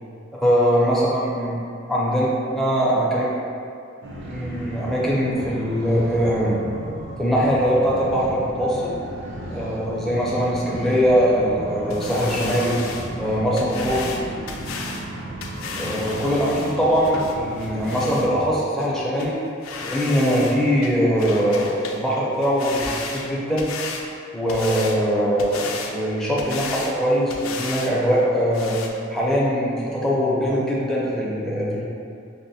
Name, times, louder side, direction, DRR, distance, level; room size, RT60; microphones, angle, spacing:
voice 1, 0.3-1.6 1.9-2.3 2.5-3.3 4.3-6.6 7.2-8.9 9.5-12.8 13.2-14.1 15.8-19.3 19.8-23.7 24.3-28.8 29.1-31.8, equal, ahead, -7 dB, 0.5 m, -21 dB
sound 1, 4.0-18.5, right 1 dB, 60° right, 0.5 m, -35 dB
sound 2, 11.9-18.3 18.8-18.9 19.2-19.3 19.6-20.6 20.8-22.0 22.3-24.0 24.5-25.0 25.4-25.9 26.4-27.0 27.3-27.9 28.2-28.3 28.5-28.9, left 4 dB, 75° left, 0.4 m, -34 dB
5.5 x 2.1 x 2.7 m, 2.5 s
head